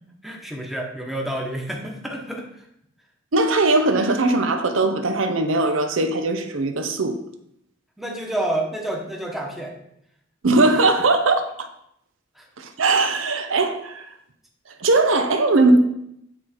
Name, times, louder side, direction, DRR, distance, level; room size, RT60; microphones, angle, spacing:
voice 1, 0.0-2.7 8.0-9.7 10.6-10.7 12.4-12.5, right 1 dB, ahead, 0 dB, 1.0 m, -29 dB
voice 2, 3.3-7.2 10.4-11.7 12.6-14.1 14.8-15.8, right 2 dB, 85° right, 7 dB, 0.7 m, -19 dB
8.4 x 3.9 x 4.4 m, 0.75 s
head